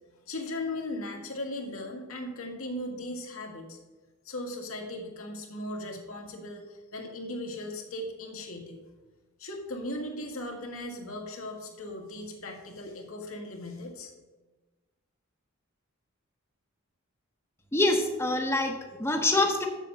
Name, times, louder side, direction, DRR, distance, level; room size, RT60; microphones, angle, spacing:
voice 1, 0.3-3.8 4.3-8.8 9.4-14.1, left 1 dB, 85° left, 1 dB, 1.7 m, -38 dB
voice 2, 17.7-19.6, left 2 dB, 10° left, 3 dB, 0.8 m, -25 dB
7.3 x 6.7 x 6.7 m, 1.2 s
head